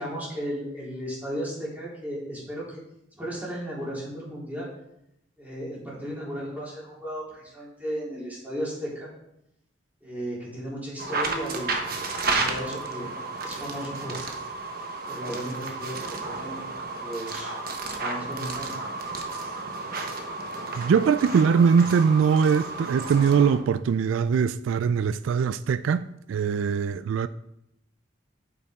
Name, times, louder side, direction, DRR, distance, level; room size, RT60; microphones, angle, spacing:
voice 1, 0.0-2.8 3.2-4.7 5.4-9.1 10.0-11.8 12.2-13.1 13.4-14.2 15.1-16.7 17.0-18.7, equal, 10° right, 3.8 m, -35 dB
sound 1, 11.0-23.6, right 3 dB, 50° right, 1.1 m, -32 dB
voice 2, 20.8-27.3, right 6 dB, 85° right, 0.3 m, -22 dB
8.6 x 8.5 x 3.6 m
head